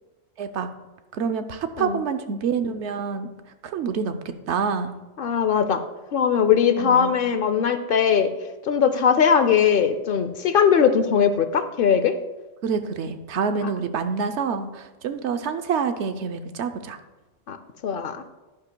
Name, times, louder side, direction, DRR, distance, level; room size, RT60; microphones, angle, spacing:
voice 1, 0.4-0.7 1.1-3.3 3.6-4.1 4.5-4.9 6.8-7.2 12.6-17.0, right 6 dB, 85° right, 8 dB, 1.0 m, -27 dB
voice 2, 5.2-5.8 6.1-8.3 8.6-12.2 13.6-13.7 17.5-17.6 17.8-18.2, left 7 dB, 60° left, 11 dB, 0.7 m, -20 dB
10.5 x 10.5 x 2.2 m, 1.1 s
omnidirectional pair, 1.1 m